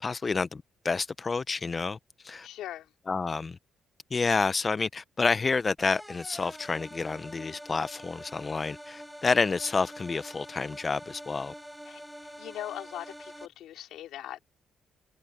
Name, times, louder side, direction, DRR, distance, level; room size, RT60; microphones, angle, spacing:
voice 1, 0.0-2.0 2.2-2.5 3.1-3.6 4.1-11.5, left 4 dB, 30° left, 0.4 m, -29 dB
voice 2, 2.4-2.9 11.9-14.4, left 12 dB, 85° left, 3.6 m, -41 dB
sound 1, 5.8-13.5, equal, ahead, 3.3 m, -45 dB
cardioid pair, 90°, 0 cm